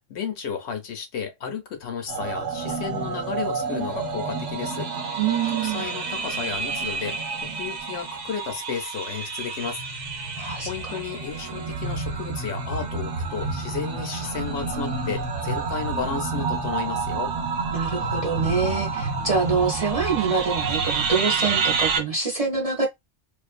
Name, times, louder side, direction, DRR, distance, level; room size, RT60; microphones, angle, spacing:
voice 1, 0.1-4.9 5.6-9.8 10.6-17.3, left 7 dB, 65° left, 0.9 m, -33 dB
sound 1, 2.1-22.0, right 4 dB, 75° right, 1.0 m, -29 dB
voice 2, 5.2-5.9 10.4-11.0 17.7-22.9, right 5 dB, 35° right, 0.7 m, -25 dB
2.5 x 2.3 x 2.4 m
omnidirectional pair, 1.3 m